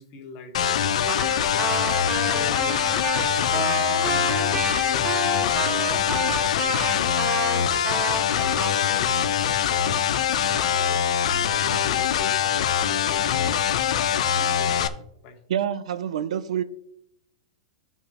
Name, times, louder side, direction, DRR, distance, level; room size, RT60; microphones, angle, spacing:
voice 1, 0.0-13.6 13.9-15.4, left 3 dB, 50° left, 1.8 m, -42 dB
sound 1, 0.5-14.9, left 9 dB, 80° left, 0.6 m, -23 dB
Trumpet, 1.1-9.1, right 3 dB, 20° right, 1.7 m, -30 dB
voice 2, 15.5-16.6, right 9 dB, 85° right, 0.7 m, -27 dB
12.0 x 5.5 x 3.1 m
supercardioid pair, 135°, 3 cm